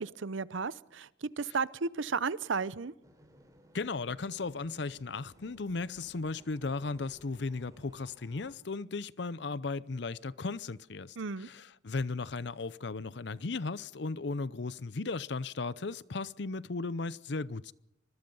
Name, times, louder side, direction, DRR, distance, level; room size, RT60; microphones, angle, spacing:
voice 1, 0.0-2.9 11.2-11.5, right 4 dB, 75° right, 0.7 m, -34 dB
sound 1, 3.0-8.5, equal, 15° right, 3.7 m, -60 dB
voice 2, 3.7-17.7, left 3 dB, 60° left, 0.6 m, -36 dB
25.0 x 21.5 x 5.5 m
head